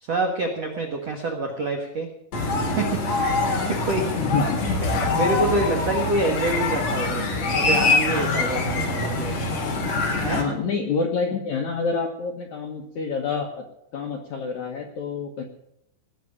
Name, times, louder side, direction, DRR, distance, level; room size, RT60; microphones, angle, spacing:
voice 1, 0.0-2.1 2.7-4.3 5.1-9.6 10.2-10.4, right 2 dB, 90° right, 2 dB, 1.4 m, -27 dB
sound 1, 2.3-10.4, left 3 dB, 45° left, 3.0 m, -24 dB
voice 2, 4.2-4.8 10.2-13.6 13.9-15.4, left 5 dB, 85° left, 1 dB, 1.6 m, -27 dB
19.0 x 6.5 x 9.9 m, 0.77 s
omnidirectional pair, 5.6 m